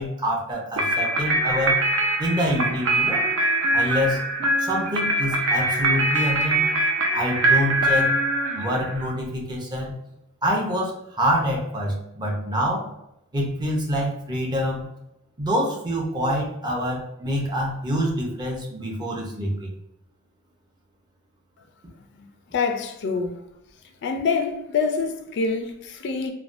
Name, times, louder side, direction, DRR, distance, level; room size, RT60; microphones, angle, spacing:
voice 1, 0.0-1.8 2.2-3.2 3.7-4.2 4.6-6.6 7.1-8.2 8.6-10.0 10.4-12.9 13.3-14.9 15.4-19.7, equal, 20° right, 0.5 m, -26 dB
sound 1, 0.8-9.1, right 2 dB, 70° right, 0.5 m, -23 dB
voice 2, 22.1-23.4 24.0-26.3, left 5 dB, 55° left, 0.3 m, -26 dB
3.2 x 2.1 x 2.5 m
head